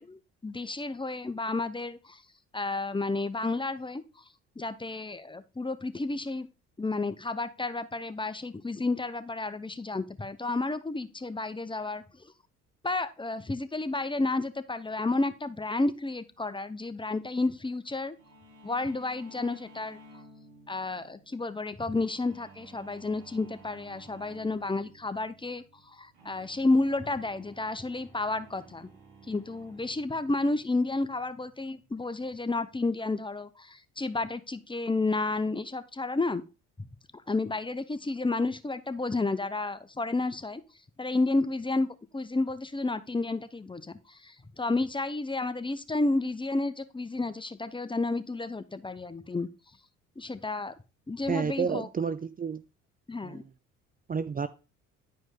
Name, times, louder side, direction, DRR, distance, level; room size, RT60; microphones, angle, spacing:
voice 1, 0.0-2.2 2.5-4.0 4.6-6.5 6.8-12.0 12.8-18.2 18.6-20.0 20.7-28.9 29.3-36.4 37.3-40.6 41.0-41.9 42.1-49.5 50.2-50.7 51.1-51.9 53.1-53.4, left 2 dB, 15° left, 0.8 m, -31 dB
sound 1, 18.2-32.6, right 2 dB, 85° right, 2.3 m, -55 dB
voice 2, 51.3-52.6 53.2-53.4 54.1-54.5, right 6 dB, 25° right, 0.6 m, -30 dB
10.5 x 5.1 x 3.8 m
hypercardioid pair, 60°, 36 cm